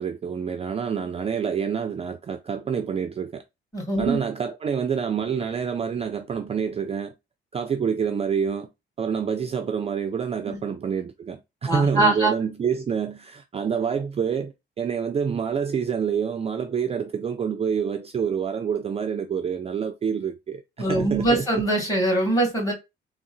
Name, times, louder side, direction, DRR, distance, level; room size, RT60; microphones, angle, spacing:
voice 1, 0.0-3.4 4.0-7.1 7.5-8.7 9.0-21.5, right 7 dB, 30° right, 0.4 m, -27 dB
voice 2, 3.7-4.2 10.5-10.6 11.7-12.3 20.8-22.7, right 2 dB, 15° left, 2.1 m, -22 dB
3.6 x 2.0 x 2.6 m
cardioid pair, 90°, 20 cm